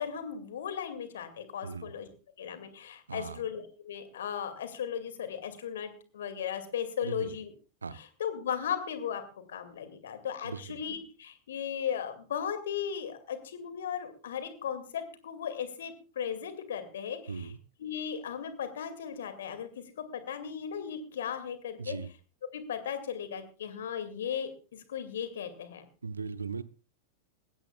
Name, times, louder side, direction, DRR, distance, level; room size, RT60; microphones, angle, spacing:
voice 1, 0.0-2.1 2.4-7.5 7.9-9.2 9.5-17.5 17.8-22.0 22.5-25.8, left 8 dB, 60° left, 9 dB, 2.2 m, -36 dB
voice 2, 1.6-1.9 3.1-3.4 7.0-7.3 7.8-8.0 10.4-10.8 17.3-17.6 21.8-22.1 26.0-26.6, right 5 dB, 75° right, 17 dB, 0.8 m, -38 dB
20.5 x 16.5 x 2.3 m, 0.35 s
figure-of-eight pair, 90°, 0 cm